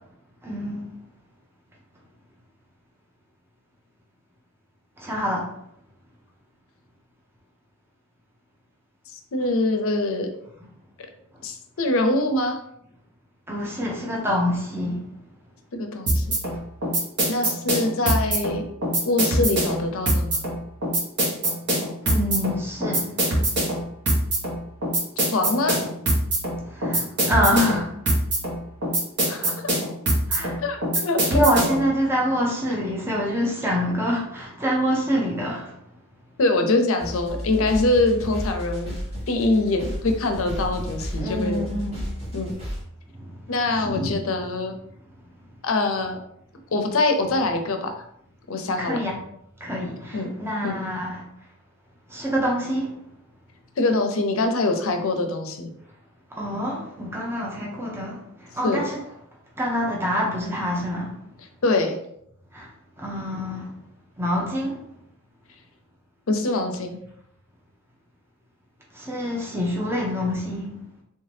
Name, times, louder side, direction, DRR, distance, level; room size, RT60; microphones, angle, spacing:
voice 1, 0.4-0.9 5.0-5.5 13.5-15.1 22.0-23.1 26.7-27.9 30.3-30.6 31.3-35.8 41.1-42.1 43.2-43.3 43.7-44.6 48.8-49.1 49.6-51.2 52.1-52.9 56.3-59.0 59.6-61.1 62.5-62.7 63.0-63.7 64.2-64.8 68.9-70.7, equal, 10° right, 0.7 m, -26 dB
voice 2, 9.1-10.3 11.4-12.6 15.7-16.3 17.3-18.6 19.1-20.4 25.3-25.8 29.3-29.6 30.6-31.3 31.8-31.9 36.4-38.9 39.3-41.6 42.3-42.5 43.5-44.7 45.6-46.2 46.7-47.9 48.5-49.0 50.1-50.3 50.6-50.8 53.8-55.7 58.6-58.8 61.6-62.0 66.3-67.0, left 2 dB, 65° left, 0.5 m, -24 dB
sound 1, 16.1-31.9, right 1 dB, 55° right, 1.4 m, -24 dB
sound 2, 37.0-42.8, equal, 30° right, 1.3 m, -33 dB
3.3 x 2.7 x 3.3 m
head